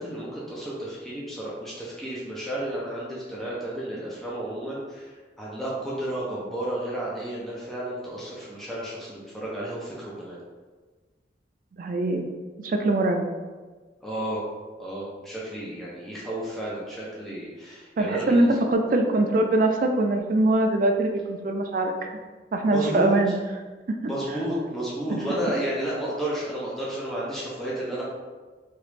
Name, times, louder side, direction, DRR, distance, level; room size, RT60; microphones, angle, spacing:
voice 1, 0.0-10.4 14.0-14.4 14.8-18.6 22.7-23.2 24.0-28.0, right 1 dB, ahead, -7 dB, 0.5 m, -32 dB
voice 2, 11.8-12.2 12.6-13.3 18.0-22.1 22.5-23.3 23.9-24.1 25.1-25.2, right 2 dB, 50° right, 4 dB, 0.3 m, -23 dB
3.0 x 2.4 x 3.2 m, 1.4 s
head